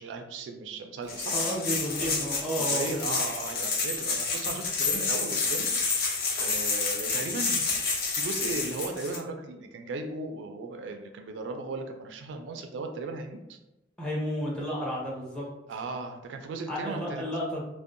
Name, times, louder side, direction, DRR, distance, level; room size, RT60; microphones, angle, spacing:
voice 1, 0.0-1.3 2.6-5.7 6.4-13.6 15.7-17.2, right 3 dB, 85° right, 5 dB, 0.3 m, -36 dB
sound 1, 1.1-9.2, left 4 dB, 55° left, 0.6 m, -29 dB
voice 2, 1.3-3.2 14.0-15.5 16.7-17.6, equal, 5° left, -5 dB, 0.7 m, -32 dB
2.6 x 2.1 x 2.5 m, 0.97 s
head